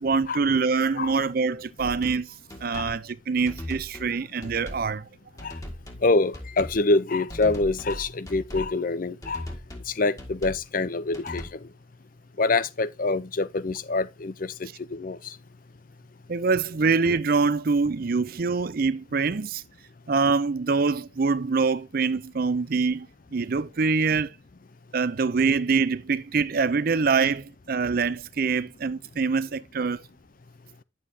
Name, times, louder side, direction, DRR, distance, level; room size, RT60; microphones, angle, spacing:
voice 1, 0.0-5.1 16.3-19.6 20.1-24.3 24.9-30.0, right 4 dB, 45° right, 0.5 m, -25 dB
sound 1, 1.8-2.2 2.5-3.0 3.5-4.1 4.4-4.9 5.4-6.1 6.3-6.8 7.3-8.7 9.2-9.9 10.2-10.7 11.1-11.5, left 1 dB, 15° left, 1.8 m, -39 dB
voice 2, 6.0-9.5 9.9-11.5 12.4-15.3, left 3 dB, 45° left, 0.6 m, -25 dB
10.5 x 7.2 x 2.8 m
head